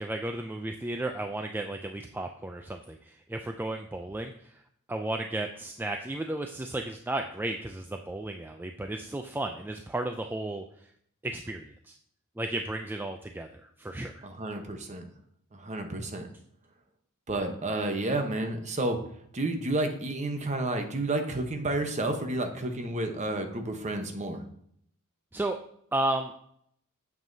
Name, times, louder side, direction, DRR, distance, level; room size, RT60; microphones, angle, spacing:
voice 1, 0.0-4.5 4.9-10.9 11.2-11.9 12.4-14.2 25.3-25.6 25.9-26.3, right 1 dB, 10° right, 4 dB, 0.3 m, -34 dB
voice 2, 14.2-15.1 15.5-16.3 17.3-19.0 19.3-24.4, right 2 dB, 30° right, 5 dB, 0.9 m, -31 dB
9.0 x 7.2 x 2.7 m, 0.68 s
head